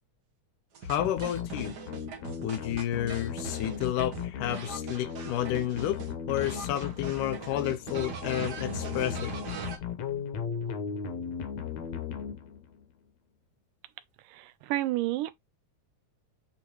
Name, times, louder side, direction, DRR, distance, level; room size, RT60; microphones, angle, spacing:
sound 1, 0.7-6.1 6.4-9.8, right 5 dB, 55° right, 1.1 m, -41 dB
voice 1, 0.8-1.7 2.4-6.0 6.3-9.4, left 12 dB, 80° left, 2.1 m, -31 dB
sound 2, 1.0-12.8, left 7 dB, 65° left, 2.0 m, -37 dB
voice 2, 14.3-15.3, right 16 dB, 80° right, 2.2 m, -30 dB
8.6 x 3.9 x 3.0 m
omnidirectional pair, 3.9 m